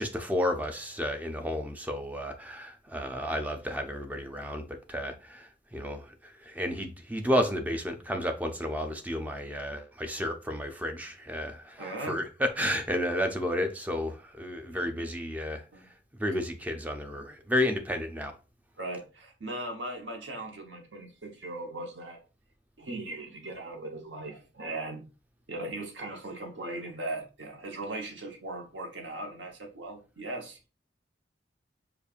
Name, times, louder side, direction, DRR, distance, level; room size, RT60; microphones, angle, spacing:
voice 1, 0.0-15.6 16.2-18.3, left 1 dB, 10° right, 0.4 m, -32 dB
voice 2, 11.8-12.2 14.7-15.0 15.7-15.8 16.3-16.4 18.8-22.2 22.8-25.0 25.5-30.7, right 2 dB, 75° right, 0.9 m, -38 dB
5.1 x 2.4 x 2.4 m
head